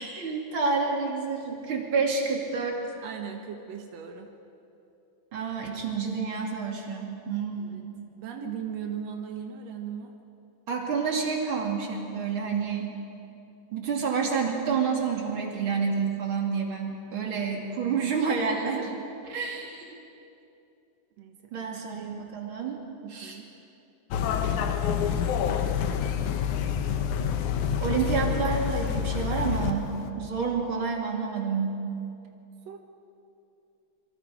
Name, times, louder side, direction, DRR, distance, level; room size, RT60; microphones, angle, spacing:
voice 1, 0.0-2.8 5.3-7.8 10.7-12.9 13.7-19.9 21.5-22.8 23.1-23.4 27.8-31.8, right 5 dB, 35° right, 0 dB, 2.6 m, -29 dB
voice 2, 3.0-4.3 7.6-7.9 8.2-10.1 17.1-17.9 18.8-18.9 21.2-21.7 23.0-23.5 32.7-32.8, right 7 dB, 85° right, 3 dB, 1.5 m, -38 dB
sound 1, 24.1-29.7 30.0-30.1, left 8 dB, 85° left, 1.7 m, -27 dB
27.0 x 23.5 x 5.0 m, 2.7 s
omnidirectional pair, 4.9 m